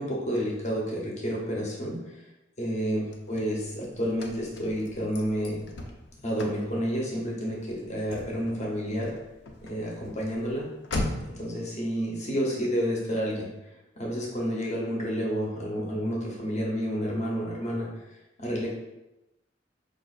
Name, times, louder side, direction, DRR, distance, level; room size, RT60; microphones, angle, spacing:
voice 1, 0.0-2.2 2.6-5.6 6.2-9.2 9.6-10.7 11.2-13.5 14.0-17.9 18.4-18.7, equal, 40° left, -3 dB, 0.8 m, -30 dB
Car / Slam, 2.8-11.5, left 1 dB, 70° left, 0.5 m, -39 dB
4.9 x 2.4 x 2.4 m, 0.95 s
head